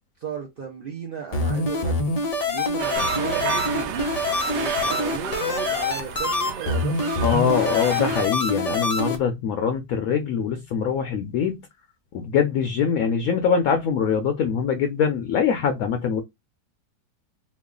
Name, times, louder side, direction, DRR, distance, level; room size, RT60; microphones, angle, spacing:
voice 1, 0.2-2.0 2.4-4.1 4.5-7.6 12.8-12.9, right 6 dB, 60° right, 0.5 m, -35 dB
sound 1, 1.3-9.2, left 2 dB, 50° left, 0.4 m, -25 dB
sound 2, 2.8-8.2, right 9 dB, 80° right, 1.2 m, -32 dB
sound 3, 3.0-7.8, right 1 dB, 10° left, 0.9 m, -41 dB
voice 2, 7.2-11.6 12.1-16.2, left 7 dB, 70° left, 0.9 m, -23 dB
3.1 x 2.3 x 3.6 m
omnidirectional pair, 1.8 m